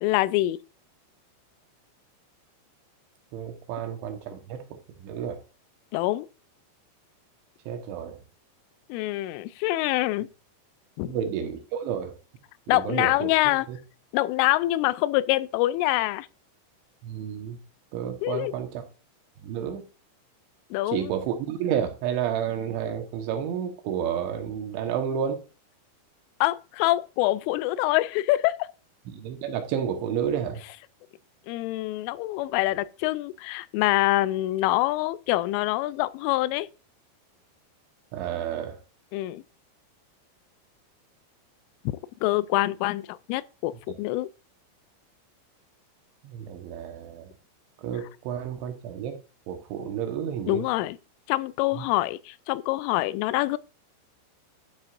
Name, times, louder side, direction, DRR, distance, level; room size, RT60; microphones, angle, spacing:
voice 1, 0.0-0.6 5.9-6.3 8.9-10.3 11.0-11.2 12.7-13.7 14.1-16.3 18.2-18.5 20.7-21.1 26.4-28.7 31.5-36.7 39.1-39.4 42.2-44.3 50.5-51.0 51.3-53.6, left 17 dB, 90° left, 3.1 m, -25 dB
voice 2, 3.3-4.6 5.0-5.4 7.7-8.2 11.1-12.2 12.7-13.3 13.7-13.8 17.0-17.6 17.9-18.8 19.4-19.9 20.9-25.4 29.1-30.6 38.1-38.8 46.2-47.3 47.8-49.2 49.5-50.7 51.7-51.9, right 8 dB, 75° right, 3.6 m, -31 dB
12.0 x 7.0 x 2.6 m
omnidirectional pair, 5.6 m